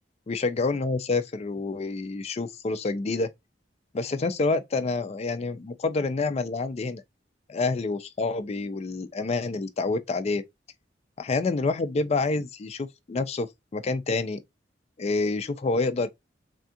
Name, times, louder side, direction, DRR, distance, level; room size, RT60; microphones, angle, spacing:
voice 1, 0.3-3.3 3.9-7.0 7.5-10.4 11.2-13.5 13.7-14.4 15.0-16.1, left 3 dB, 35° left, 0.4 m, -27 dB
3.4 x 2.3 x 2.6 m
head